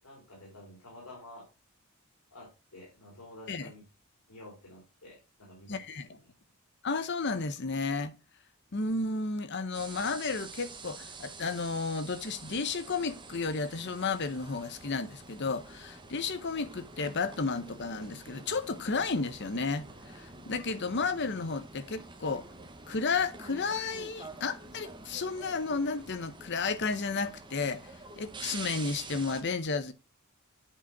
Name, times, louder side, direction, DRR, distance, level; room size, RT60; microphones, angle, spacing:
voice 1, 0.0-1.4 2.3-3.8 4.3-6.3, left 1 dB, 90° left, 3.5 m, -50 dB
voice 2, 5.7-6.1 6.8-8.1 8.7-22.4 22.9-27.8 28.2-29.9, left 4 dB, 50° left, 0.8 m, -32 dB
sound 1, 9.7-29.4, right 3 dB, 20° right, 1.1 m, -47 dB
8.7 x 5.0 x 4.7 m
head